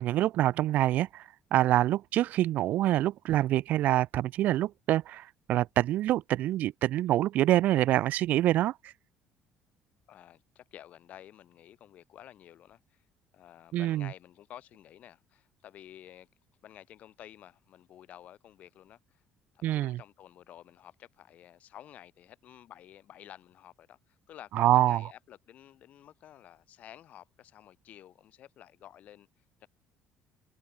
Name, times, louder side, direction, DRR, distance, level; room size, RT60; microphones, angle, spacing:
voice 1, 0.0-8.7 13.7-14.1 19.6-20.0 24.5-25.0, right 14 dB, 60° right, 0.5 m, -26 dB
voice 2, 10.1-13.0 13.3-16.3 16.6-19.2 19.5-29.3 29.6-29.7, left 11 dB, 50° left, 7.3 m, -52 dB
cardioid pair, 150°, 3 cm